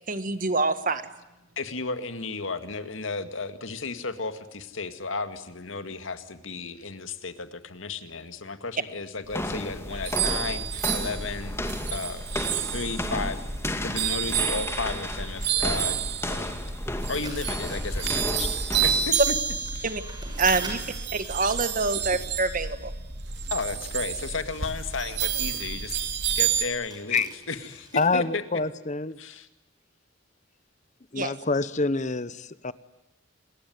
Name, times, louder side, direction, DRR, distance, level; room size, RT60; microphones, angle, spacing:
voice 1, 0.1-1.0 19.8-20.0 20.4-20.8 21.1-22.9 31.1-31.3, right 3 dB, 45° right, 11 dB, 1.7 m, -26 dB
voice 2, 1.6-12.2 12.7-13.4 13.8-16.6 17.1-19.4 19.7-19.9 23.5-26.0 26.3-28.4 29.2-29.5, left 4 dB, 80° left, 9 dB, 2.0 m, -34 dB
sound 1, 9.3-19.2, left 1 dB, 15° left, 2.3 m, -33 dB
sound 2, 9.9-26.6, right 8 dB, 60° right, 2.8 m, -30 dB
sound 3, 17.1-22.1 22.3-28.1, right 2 dB, 20° right, 6.6 m, -47 dB
voice 3, 27.9-29.2 31.1-32.7, left 3 dB, 40° left, 16 dB, 0.9 m, -26 dB
27.5 x 20.5 x 9.4 m, 0.96 s
head